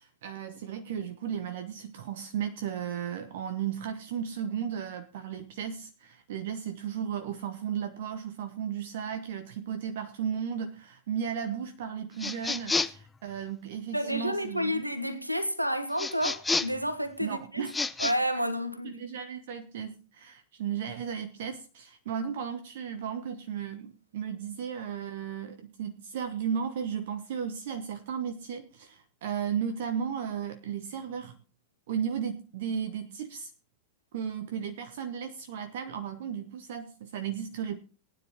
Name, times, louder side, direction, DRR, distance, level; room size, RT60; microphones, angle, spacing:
voice 1, 0.0-14.8 17.2-17.7 18.8-31.4 31.9-33.5 34.1-37.8, right 8 dB, 55° right, 1.1 m, -35 dB
sound 1, 12.2-13.1 16.0-16.9 17.7-18.1, left 3 dB, 10° left, 0.6 m, -30 dB
voice 2, 13.9-17.6 18.0-18.9, equal, 90° right, 1.2 m, -30 dB
19.0 x 9.7 x 3.0 m
figure-of-eight pair, 90°, 0 cm